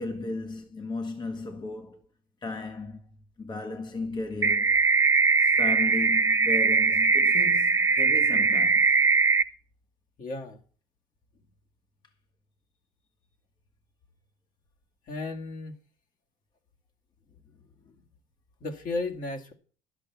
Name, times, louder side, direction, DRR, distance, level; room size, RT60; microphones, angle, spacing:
voice 1, 0.0-2.0 2.4-4.8 5.4-8.9, left 3 dB, 25° left, 1.2 m, -35 dB
sound 1, 4.4-9.4, right 4 dB, 15° right, 0.6 m, -21 dB
voice 2, 10.2-10.6 15.1-15.8 17.6-18.0 18.6-19.5, left 2 dB, 50° left, 2.1 m, -35 dB
11.0 x 7.1 x 7.0 m
cardioid pair, 110°, 17 cm